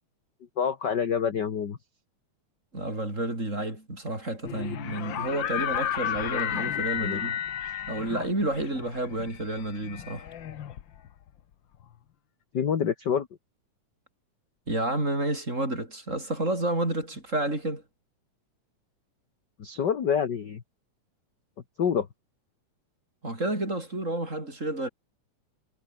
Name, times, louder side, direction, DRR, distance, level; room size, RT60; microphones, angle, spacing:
voice 1, 0.6-1.8 6.3-6.6 7.0-7.2 12.5-13.3 19.6-20.6 21.8-22.1, left 7 dB, 45° left, 1.6 m, -27 dB
voice 2, 2.7-7.4 7.9-10.3 14.7-17.8 23.2-24.9, right 1 dB, 20° right, 6.5 m, -30 dB
sound 1, 4.4-11.3, left 10 dB, 65° left, 1.2 m, -33 dB
omnidirectional pair, 3.7 m